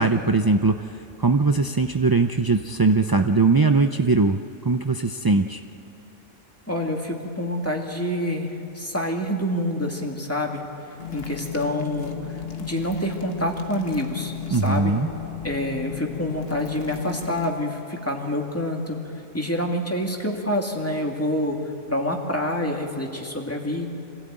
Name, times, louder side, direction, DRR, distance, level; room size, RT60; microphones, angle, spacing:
voice 1, 0.0-5.6 14.5-15.1, right 3 dB, 30° right, 6 dB, 0.4 m, -21 dB
voice 2, 6.7-10.6 11.1-14.9 15.4-23.9, left 1 dB, 10° left, 1 dB, 2.4 m, -27 dB
sound 1, 11.0-17.5, left 9 dB, 55° left, 1.5 m, -35 dB
26.0 x 16.0 x 8.9 m, 2.9 s
omnidirectional pair, 1.2 m